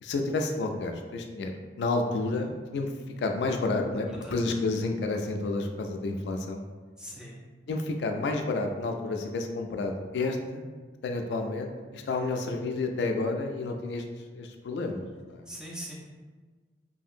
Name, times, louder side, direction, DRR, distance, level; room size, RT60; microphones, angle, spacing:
voice 1, 0.0-1.5 1.8-2.9 3.2-6.6 7.7-10.7 11.0-14.0 14.3-15.5, left 3 dB, 80° left, 4 dB, 0.3 m, -30 dB
voice 2, 4.1-4.6 7.0-7.4 15.5-15.9, equal, 5° right, -5 dB, 0.4 m, -42 dB
2.7 x 2.6 x 2.4 m, 1.4 s
head